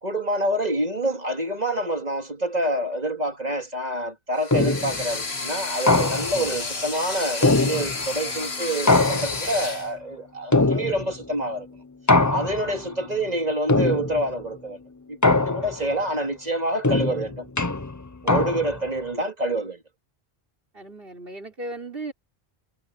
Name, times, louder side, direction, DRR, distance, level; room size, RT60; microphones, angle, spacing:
voice 1, 0.0-11.7 12.3-14.8 15.1-17.5 18.2-19.8, right 1 dB, 40° right, 3.0 m, -27 dB
sound 1, 4.4-9.9, left 3 dB, 75° left, 2.3 m, -31 dB
sound 2, 4.5-5.0 5.9-6.5 7.4-8.2 8.9-9.7 10.5-11.2 12.1-12.8 13.7-14.3 15.2-15.9 16.8-18.9, left 2 dB, 20° left, 0.9 m, -22 dB
voice 2, 12.8-13.2 15.6-15.7 20.7-22.1, right 2 dB, 60° right, 4.8 m, -37 dB
omnidirectional pair, 1.1 m